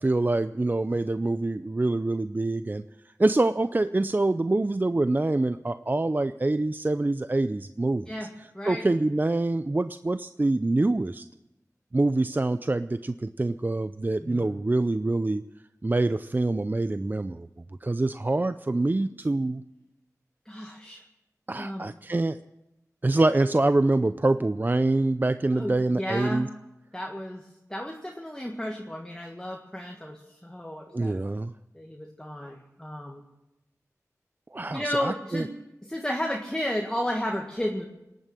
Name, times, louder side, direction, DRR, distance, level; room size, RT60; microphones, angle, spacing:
voice 1, 0.0-2.8 3.2-8.1 8.7-11.2 11.9-15.4 15.8-17.5 17.8-19.6 21.5-22.4 23.0-26.5 30.9-31.5 34.5-35.4, right 2 dB, 30° right, 12 dB, 0.4 m, -25 dB
voice 2, 8.1-8.9 14.2-14.6 20.4-21.0 21.5-21.9 25.5-26.5 26.9-31.2 31.7-33.2 34.7-35.5 35.8-37.9, equal, 10° left, 1 dB, 1.7 m, -33 dB
19.0 x 9.1 x 7.5 m, 0.94 s
wide cardioid pair, 45°, 6 cm